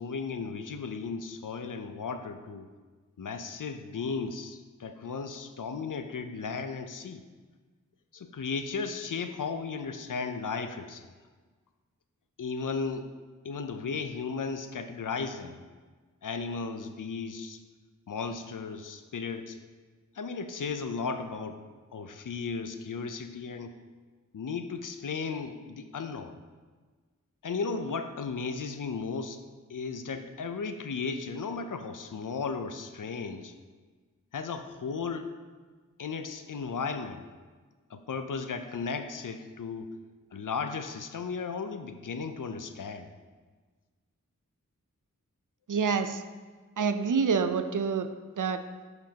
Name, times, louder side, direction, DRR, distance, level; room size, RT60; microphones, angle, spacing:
voice 1, 0.0-2.7 3.2-7.2 8.1-11.1 12.4-13.1 13.4-15.6 16.2-17.6 18.1-19.6 20.1-21.6 21.9-23.7 24.3-26.4 27.4-29.4 29.7-33.5 34.3-35.3 36.0-37.2 37.9-39.9 40.3-43.1, left 5 dB, 70° left, 8 dB, 0.6 m, -35 dB
voice 2, 45.7-46.2 46.8-48.1 48.4-48.6, right 5 dB, 70° right, 9 dB, 0.5 m, -27 dB
10.5 x 5.2 x 2.9 m, 1.4 s
wide cardioid pair, 45°, 32 cm